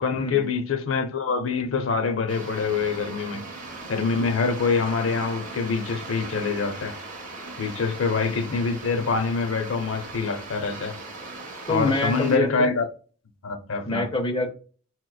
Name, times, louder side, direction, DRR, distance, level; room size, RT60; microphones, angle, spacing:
voice 1, 0.0-3.4 3.9-6.9 7.6-11.0 11.7-12.9 13.4-14.1, left 4 dB, 75° left, 0.6 m, -25 dB
sound 1, 2.3-12.4, right 3 dB, 40° right, 0.8 m, -38 dB
voice 2, 11.7-12.7 13.9-14.5, left 2 dB, 25° left, 0.7 m, -25 dB
4.8 x 2.9 x 2.2 m
head